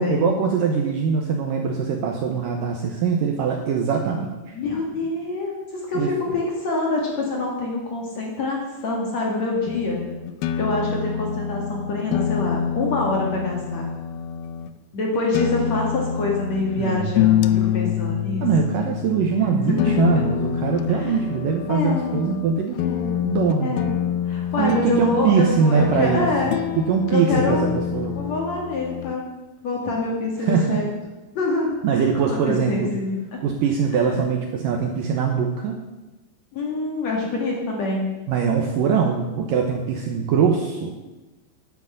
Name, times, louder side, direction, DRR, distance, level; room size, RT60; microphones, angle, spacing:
voice 1, 0.0-4.6 5.9-6.1 16.8-17.2 18.4-22.8 23.2-23.8 24.6-26.3 26.8-28.2 30.4-30.8 31.8-32.9 33.4-35.8 38.3-40.9, right 6 dB, 70° right, 2 dB, 2.2 m, -22 dB
voice 2, 4.5-10.0 10.6-13.9 14.9-18.7 19.4-20.1 20.9-21.3 21.7-22.3 22.7-23.1 23.6-23.9 24.3-26.5 27.1-27.7 28.1-29.2 29.6-30.8 31.3-33.4 33.9-34.2 36.5-38.1, left 3 dB, 50° left, -1 dB, 2.7 m, -26 dB
sound 1, 9.7-14.7 15.3-29.2, left 10 dB, 85° left, 2.2 m, -26 dB
10.5 x 8.2 x 7.8 m, 1.1 s
omnidirectional pair, 4.9 m